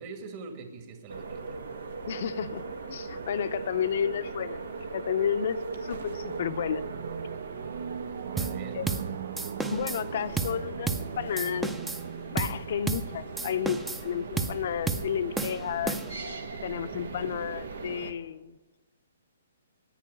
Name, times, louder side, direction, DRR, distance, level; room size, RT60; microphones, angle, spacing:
voice 1, 0.0-1.6 8.3-8.9 16.9-17.2, right 4 dB, 40° right, 4 dB, 2.2 m, -44 dB
sound 1, 1.1-18.1, right 4 dB, 80° right, 1.7 m, -39 dB
voice 2, 2.1-2.6 2.9-4.6 4.9-6.8 8.7-8.8 9.7-11.7 12.3-16.0 16.6-18.6, left 8 dB, 55° left, 12 dB, 0.6 m, -31 dB
sound 2, 6.1-13.5, right 9 dB, 55° right, 0.4 m, -40 dB
sound 3, 8.4-8.6 8.9-9.1 9.4-10.0 10.4-10.6 10.9-11.1 11.4-12.0 12.4-12.6 12.9-13.1 13.4-14.1 14.4-14.6 14.9-15.1 15.4-16.3, right 3 dB, 5° right, 0.6 m, -32 dB
10.0 x 9.1 x 9.9 m, 1.2 s
hypercardioid pair, 150°, 0 cm